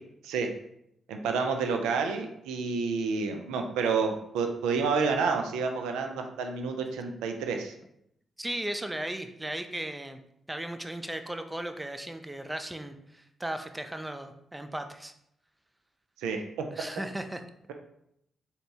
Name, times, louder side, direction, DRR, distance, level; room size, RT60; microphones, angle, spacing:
voice 1, 1.1-7.7 16.2-16.6, right 5 dB, 85° right, 5 dB, 0.4 m, -29 dB
voice 2, 8.4-10.2 10.5-15.1 16.7-17.4, right 1 dB, 15° right, 7 dB, 0.5 m, -36 dB
3.9 x 2.8 x 3.4 m, 0.75 s
hypercardioid pair, 45°, 0 cm